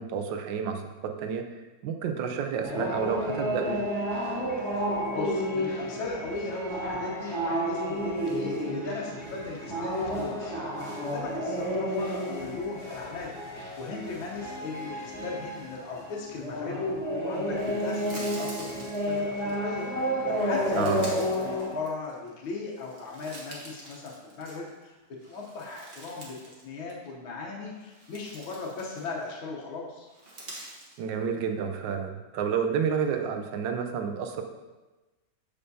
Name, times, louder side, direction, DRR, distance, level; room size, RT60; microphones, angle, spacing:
voice 1, 0.0-1.5 1.8-3.8 20.7-21.0 31.0-34.4, right 7 dB, 75° right, 5 dB, 1.3 m, -30 dB
sound 1, 2.6-21.7, equal, ahead, 1.5 m, -31 dB
voice 2, 5.1-10.6 11.0-13.4 13.8-16.9 17.2-19.9 20.3-25.0 25.3-26.4 26.6-30.1, left 3 dB, 80° left, -2 dB, 1.7 m, -37 dB
sound 2, 17.5-19.5 20.3-22.3 22.7-24.8 25.2-26.6 26.9-27.1 27.7-29.4 30.1-31.0, right 1 dB, 35° right, 1.2 m, -46 dB
7.0 x 6.7 x 2.7 m, 1.1 s
omnidirectional pair, 2.2 m